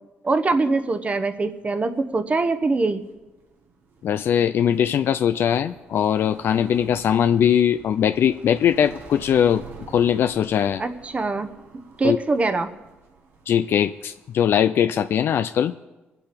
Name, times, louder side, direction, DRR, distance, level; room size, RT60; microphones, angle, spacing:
voice 1, 0.2-3.0 10.8-11.5 12.0-12.7, right 3 dB, 30° right, 8 dB, 1.1 m, -23 dB
sound 1, 0.7-14.6, right 5 dB, 80° right, 2.1 m, -48 dB
voice 2, 4.0-10.8 12.0-12.2 13.5-15.7, left 9 dB, 70° left, 10 dB, 0.4 m, -21 dB
22.0 x 8.3 x 5.1 m, 1.1 s
cardioid pair, 100°, 4 cm